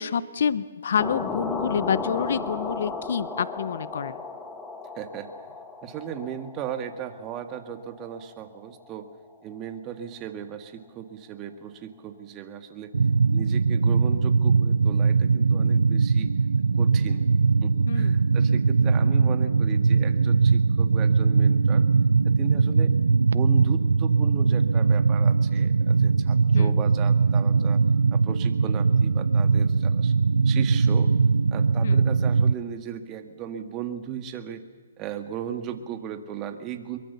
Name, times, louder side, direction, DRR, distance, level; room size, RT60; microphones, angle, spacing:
voice 1, 0.0-4.2 17.9-18.2 26.5-26.8 31.8-32.0, left 7 dB, 60° left, 17 dB, 0.8 m, -28 dB
sound 1, 1.0-9.0, left 3 dB, 10° left, 1.7 m, -35 dB
voice 2, 5.0-5.3 5.8-9.1 9.4-12.9 13.3-16.3 16.8-17.3 17.6-21.8 22.3-22.9 23.2-27.8 28.1-30.1 30.4-31.1 31.5-34.6 35.0-37.0, right 9 dB, 25° right, 8 dB, 1.8 m, -36 dB
sound 2, 12.9-32.5, right 4 dB, 85° right, 0.6 m, -21 dB
23.5 x 22.5 x 7.0 m, 1.4 s
hypercardioid pair, 150°, 0 cm